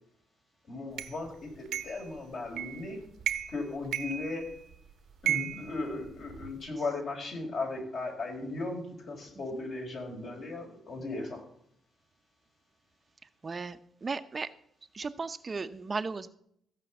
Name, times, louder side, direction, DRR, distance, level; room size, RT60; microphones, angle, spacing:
voice 1, 0.6-3.0 3.5-4.5 5.2-11.4, left 3 dB, 60° left, 1 dB, 4.6 m, -37 dB
sound 1, 1.0-1.1 1.7-2.1 2.6-2.9 3.2-3.6 3.9-4.7 5.3-6.5, right 10 dB, 80° right, 1.0 m, -34 dB
voice 2, 13.4-14.5 14.9-16.3, right 4 dB, 35° right, 10 dB, 0.7 m, -36 dB
15.0 x 5.2 x 7.8 m, 0.69 s
cardioid pair, 85°, 0 cm